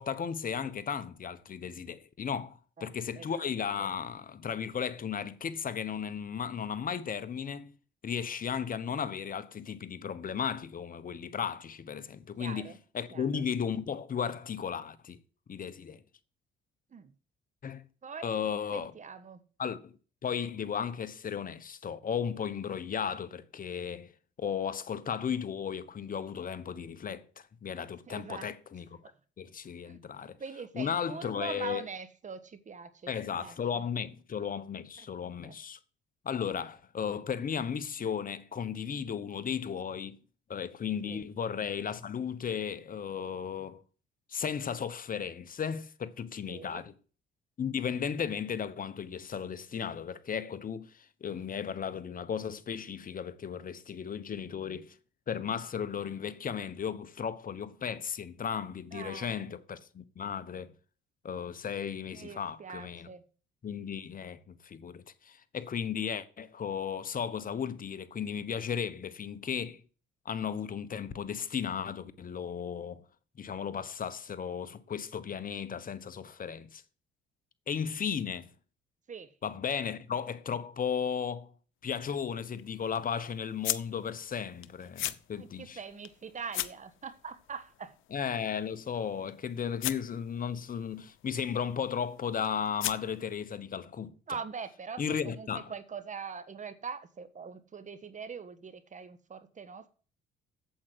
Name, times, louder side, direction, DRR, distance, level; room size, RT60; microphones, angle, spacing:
voice 1, 0.0-7.7 8.0-12.7 12.9-15.2 15.5-16.0 17.6-17.8 18.2-18.9 19.6-19.9 20.2-24.1 24.4-27.2 27.6-28.9 29.4-30.4 30.8-31.8 33.1-35.8 36.2-40.2 40.5-43.8 44.3-46.9 47.6-54.9 55.3-60.7 61.2-63.1 63.6-69.8 70.2-73.0 73.4-76.8 77.7-78.5 79.4-81.5 81.8-85.8 88.1-94.1 95.0-95.7, left 7 dB, 45° left, 1.2 m, -35 dB
voice 2, 2.8-3.5 3.8-3.9 12.4-12.8 13.1-13.4 16.9-17.1 18.0-18.3 18.7-19.4 28.1-28.5 29.0-29.1 29.8-33.9 35.0-35.5 41.0-41.2 46.5-46.9 58.9-59.5 62.1-63.2 79.1-79.4 85.4-88.0 94.3-99.9, right 5 dB, 40° right, 1.3 m, -43 dB
sound 1, 81.8-93.4, left 15 dB, 80° left, 0.8 m, -42 dB
8.5 x 7.8 x 7.9 m
cardioid pair, 85°, 20 cm